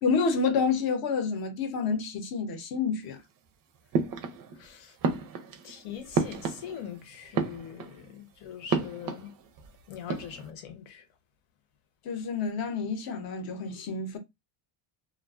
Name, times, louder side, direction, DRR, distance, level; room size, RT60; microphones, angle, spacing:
voice 1, 0.0-3.2 12.0-14.2, left 5 dB, 50° left, 0.7 m, -28 dB
sound 1, 3.9-4.7 5.0-7.0 7.2-8.1 8.7-9.7 9.9-10.5, right 5 dB, 45° right, 0.4 m, -31 dB
voice 2, 4.5-5.0 5.6-9.3 9.9-11.1, left 9 dB, 80° left, 0.9 m, -42 dB
2.4 x 2.2 x 2.3 m
cardioid pair, 145°, 48 cm